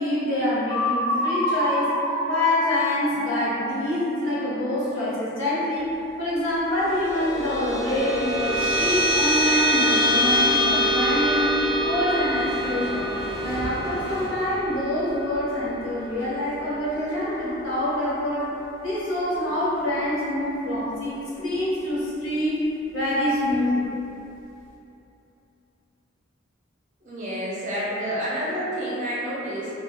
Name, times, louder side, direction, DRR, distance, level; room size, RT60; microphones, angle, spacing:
voice 1, 0.0-2.0 2.3-11.5 11.8-13.1 13.4-18.5 18.8-22.6 22.9-23.7, left 1 dB, 65° left, -9 dB, 0.8 m, -26 dB
sound 1, 0.7-4.6, equal, 25° left, 0.4 m, -28 dB
sound 2, 6.8-17.6, equal, 10° left, 0.8 m, -25 dB
sound 3, 12.2-16.6, equal, 50° left, 1.1 m, -38 dB
voice 2, 27.0-29.7, equal, 40° right, -7 dB, 0.6 m, -29 dB
2.7 x 2.3 x 2.3 m, 2.9 s
head